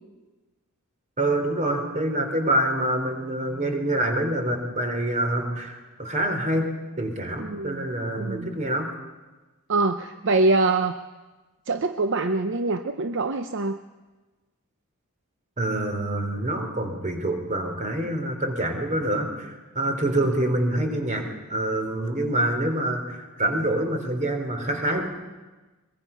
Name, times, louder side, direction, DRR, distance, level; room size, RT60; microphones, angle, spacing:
voice 1, 1.2-6.7 7.0-8.9 15.6-25.1, right 1 dB, 35° right, 5 dB, 3.3 m, -26 dB
voice 2, 7.4-7.9 8.2-8.5 9.7-10.9 11.7-13.8, right 3 dB, 60° right, 8 dB, 0.8 m, -24 dB
23.5 x 22.5 x 5.6 m, 1.2 s
head